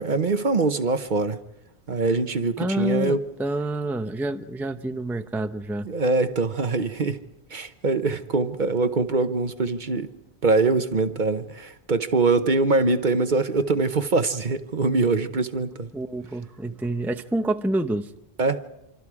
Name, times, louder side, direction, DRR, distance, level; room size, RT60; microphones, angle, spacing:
voice 1, 0.0-1.4 1.9-3.3 5.8-7.2 7.5-10.1 10.4-15.9 18.4-18.7, right 3 dB, 50° right, 1.0 m, -23 dB
voice 2, 2.6-5.9 15.9-18.1, right 1 dB, ahead, 0.6 m, -28 dB
26.5 x 26.0 x 4.8 m
omnidirectional pair, 1.1 m